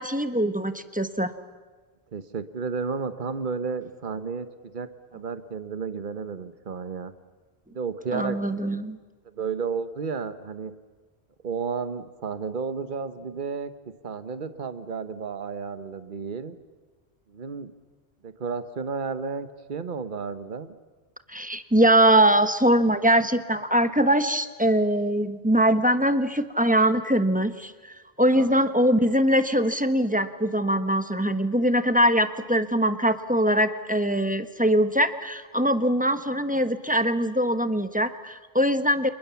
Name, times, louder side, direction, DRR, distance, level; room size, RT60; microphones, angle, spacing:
voice 1, 0.0-1.3 8.1-9.0 21.3-27.7 28.2-39.1, right 1 dB, 10° right, 9 dB, 1.1 m, -22 dB
voice 2, 2.1-7.1 7.7-8.4 9.3-10.7 11.4-13.7 14.0-16.5 17.3-17.7 18.2-20.7 28.3-28.5, right 5 dB, 50° right, 11 dB, 1.3 m, -32 dB
30.0 x 28.0 x 7.1 m, 1.3 s
omnidirectional pair, 1.1 m